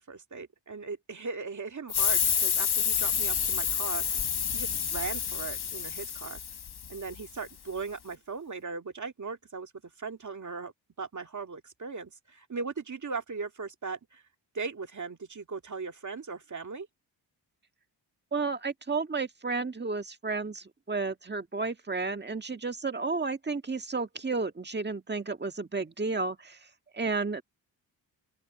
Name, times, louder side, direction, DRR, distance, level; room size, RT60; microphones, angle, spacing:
voice 1, 0.0-6.4 6.9-9.7 10.0-10.7 11.0-14.2 14.5-16.9, right 4 dB, 40° right, 2.3 m, -38 dB
sound 1, 1.9-7.2, left 7 dB, 60° left, 1.5 m, -29 dB
voice 2, 18.3-26.6 26.9-27.4, right 4 dB, 25° right, 1.6 m, -32 dB
open air
cardioid pair, 85°, 44 cm